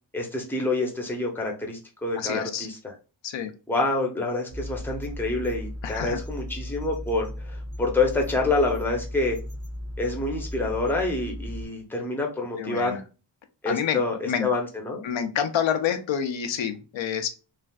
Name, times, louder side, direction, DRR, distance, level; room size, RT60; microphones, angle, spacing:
voice 1, 0.1-2.9 3.7-9.4 10.0-13.0 13.6-15.0, left 2 dB, 5° left, 1 dB, 0.6 m, -27 dB
voice 2, 2.2-2.7 3.2-3.5 5.8-6.2 12.6-13.0 13.7-14.0 14.3-14.5 15.0-17.3, left 8 dB, 85° left, 7 dB, 0.6 m, -28 dB
sound 1, 4.5-11.7, left 1 dB, 35° right, 0.6 m, -36 dB
3.2 x 2.5 x 2.3 m, 0.32 s
wide cardioid pair, 140°, 45 cm